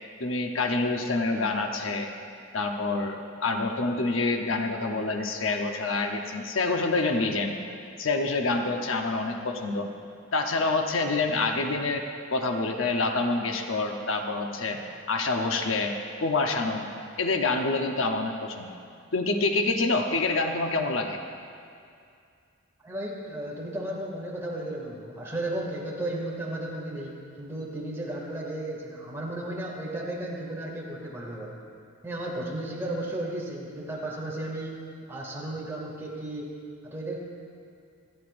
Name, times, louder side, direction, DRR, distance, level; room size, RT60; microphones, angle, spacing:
voice 1, 0.2-2.1 2.5-7.6 8.0-9.9 10.3-12.0 12.3-14.8 15.1-15.9 16.2-16.9 17.2-18.7 19.1-21.2, left 3 dB, 75° left, 3 dB, 0.9 m, -27 dB
voice 2, 22.8-31.6 32.0-34.8 35.1-36.5 36.8-37.2, right 1 dB, 10° right, -4 dB, 2.2 m, -34 dB
25.5 x 10.5 x 2.6 m, 2.4 s
head